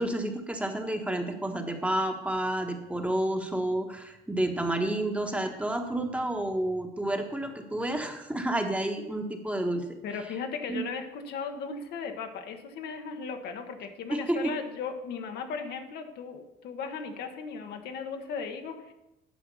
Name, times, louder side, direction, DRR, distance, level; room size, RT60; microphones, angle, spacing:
voice 1, 0.0-9.8 10.7-10.8 14.1-14.5, right 1 dB, 10° right, 4 dB, 1.2 m, -30 dB
voice 2, 10.0-18.9, left 5 dB, 75° left, 5 dB, 1.2 m, -37 dB
10.0 x 6.3 x 5.5 m, 0.94 s
cardioid pair, 110°, 17 cm